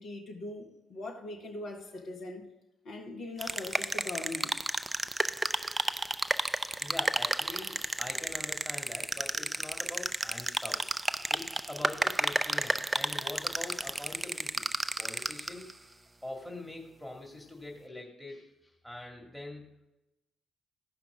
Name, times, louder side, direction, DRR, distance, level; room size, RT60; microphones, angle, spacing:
voice 1, 0.0-2.4 2.8-4.6, left 2 dB, 60° left, 1.7 m, -41 dB
sound 1, 3.4-15.7, right 2 dB, 20° right, 0.5 m, -32 dB
voice 2, 6.8-10.9 11.3-14.7 15.0-15.7 16.2-19.7, left 1 dB, 5° left, 2.3 m, -43 dB
15.5 x 5.8 x 3.6 m
figure-of-eight pair, 45°, 0 cm